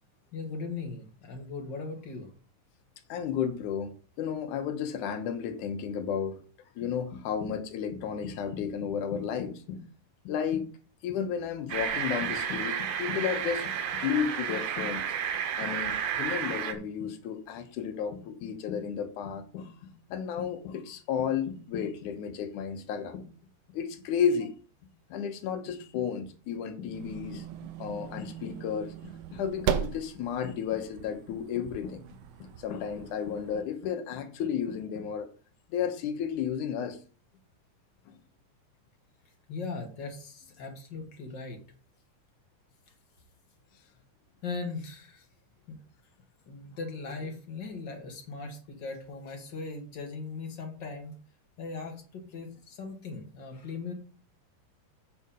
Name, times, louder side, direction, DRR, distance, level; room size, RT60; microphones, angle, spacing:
voice 1, 0.3-2.3 39.5-41.6 44.4-45.3 45.7-45.8 46.5-51.2 51.6-53.9, left 4 dB, 45° left, 1.7 m, -39 dB
voice 2, 3.1-3.9 4.2-6.4 6.8-9.8 10.2-10.7 11.0-15.1 15.6-19.7 20.1-23.3 23.7-24.5 25.1-27.5 27.8-32.0 32.4-35.3 35.7-37.0, left 7 dB, 75° left, 2.4 m, -32 dB
sound 1, 11.7-16.7, right 8 dB, 65° right, 1.8 m, -32 dB
sound 2, 26.9-33.6, right 11 dB, 85° right, 1.3 m, -38 dB
8.6 x 5.5 x 5.2 m
omnidirectional pair, 3.7 m